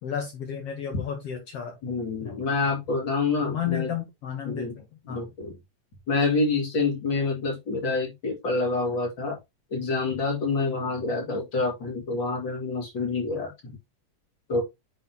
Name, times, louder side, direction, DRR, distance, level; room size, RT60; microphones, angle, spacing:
voice 1, 0.0-1.8 2.2-2.5 3.4-5.3, left 9 dB, 65° left, 1.7 m, -33 dB
voice 2, 1.8-3.9 4.4-4.8 5.1-5.5 6.1-9.3 9.7-13.8 14.5-14.6, left 3 dB, 40° left, 2.5 m, -27 dB
9.2 x 4.1 x 2.9 m
omnidirectional pair, 3.7 m